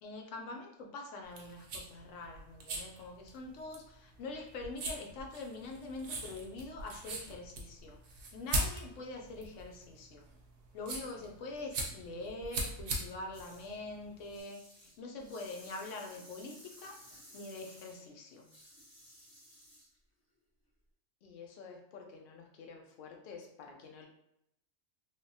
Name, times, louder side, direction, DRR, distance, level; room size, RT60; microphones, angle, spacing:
voice 1, 0.0-8.0 8.3-10.2 10.7-17.0 17.3-18.5, left 2 dB, 80° left, 2 dB, 0.9 m, -44 dB
sound 1, 1.2-14.4, right 1 dB, 65° right, 0.9 m, -41 dB
sound 2, 13.3-13.8 14.2-20.0, equal, 30° left, 1.3 m, -56 dB
voice 2, 21.2-24.1, left 5 dB, 60° left, 1 dB, 0.6 m, -50 dB
3.2 x 2.1 x 2.6 m, 0.78 s
omnidirectional pair, 1.3 m